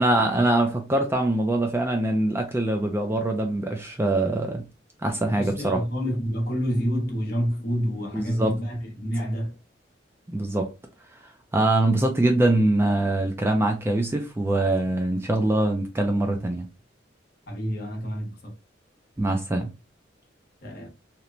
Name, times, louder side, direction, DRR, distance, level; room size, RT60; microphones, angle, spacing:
voice 1, 0.0-4.6 5.0-5.8 8.1-8.6 10.3-10.7 11.5-16.7 19.2-19.7, right 2 dB, 15° right, 0.3 m, -23 dB
voice 2, 5.3-9.5 17.5-18.5 20.6-20.9, equal, 55° left, 0.9 m, -28 dB
2.9 x 2.1 x 2.4 m
head